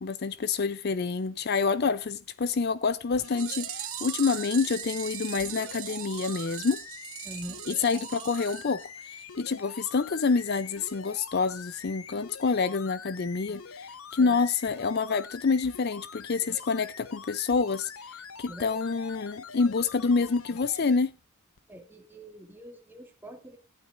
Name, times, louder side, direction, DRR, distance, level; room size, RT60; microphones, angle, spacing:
voice 1, 0.0-6.8 7.7-8.8 9.4-21.1, left 4 dB, 45° left, 0.5 m, -27 dB
sound 1, 3.1-21.0 21.6-21.7, left 6 dB, 75° left, 0.8 m, -45 dB
sound 2, 3.2-9.4 9.7-9.8 10.0-10.1 10.5-10.6 10.9-11.0, right 14 dB, 70° right, 1.2 m, -39 dB
voice 2, 7.2-7.6 14.2-14.4 18.5-18.8 21.7-23.6, right 1 dB, 10° right, 2.0 m, -44 dB
15.0 x 12.0 x 2.5 m
head